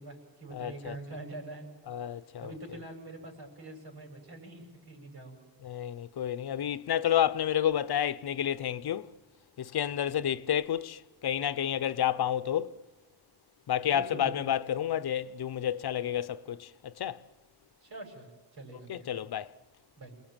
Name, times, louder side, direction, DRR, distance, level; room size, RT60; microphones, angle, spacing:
voice 1, 0.0-1.7 2.4-5.4 13.9-14.6 17.8-19.1 20.0-20.1, right 2 dB, 80° right, 7.4 m, -44 dB
voice 2, 0.5-1.0 1.9-2.5 5.6-9.1 9.6-12.8 13.7-17.2 18.9-19.5, left 10 dB, 75° left, 0.9 m, -30 dB
28.5 x 20.0 x 9.0 m
wide cardioid pair, 130°, 38 cm